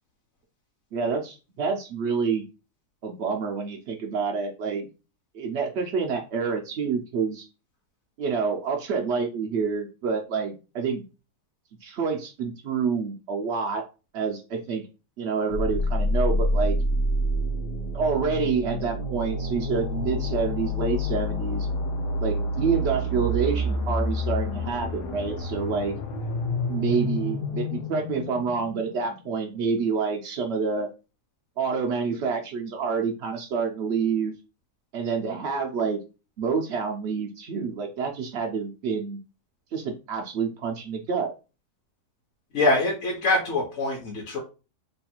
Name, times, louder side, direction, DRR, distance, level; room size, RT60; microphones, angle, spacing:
voice 1, 0.9-2.4 3.0-4.9 5.3-7.5 8.2-11.0 11.8-13.8 14.1-14.8 15.2-16.8 17.9-21.7 22.2-25.9 26.7-30.9 31.6-34.3 34.9-36.0 36.4-39.2 39.7-41.3, right 5 dB, 75° right, 2 dB, 0.6 m, -28 dB
sound 1, 15.5-29.3, left 1 dB, 85° left, 1.2 m, -28 dB
voice 2, 42.5-44.4, left 2 dB, 55° left, -1 dB, 1.0 m, -24 dB
3.2 x 2.3 x 4.3 m, 0.31 s
omnidirectional pair, 1.7 m